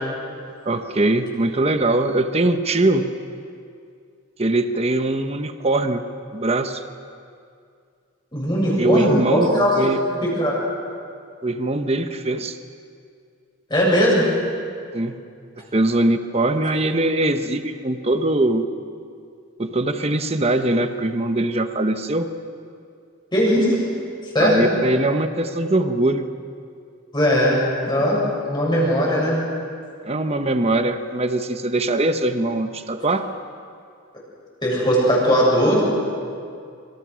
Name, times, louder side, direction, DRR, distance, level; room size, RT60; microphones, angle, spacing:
voice 1, 0.6-3.1 4.4-6.0 6.3-6.8 8.8-10.0 11.4-12.6 14.9-15.2 15.6-18.7 19.6-22.3 24.4-26.3 30.1-33.3, right 2 dB, 30° right, 8 dB, 1.1 m, -21 dB
voice 2, 8.3-9.7 10.0-10.5 13.7-14.3 23.3-23.7 24.3-24.7 27.1-27.6 27.9-29.5 34.6-35.8, equal, 20° left, -4 dB, 7.8 m, -19 dB
26.5 x 25.5 x 6.3 m, 2.3 s
head